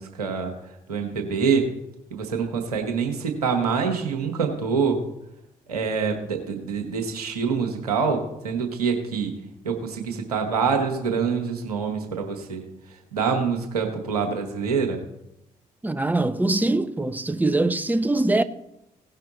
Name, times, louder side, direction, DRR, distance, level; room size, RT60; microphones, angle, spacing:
voice 1, 0.0-1.7 2.1-5.0 5.7-9.4 9.6-15.0, right 5 dB, 90° right, 1.3 m, -26 dB
voice 2, 15.8-18.4, right 2 dB, 10° right, 0.8 m, -22 dB
17.0 x 5.7 x 4.0 m
hypercardioid pair, 40°, 19 cm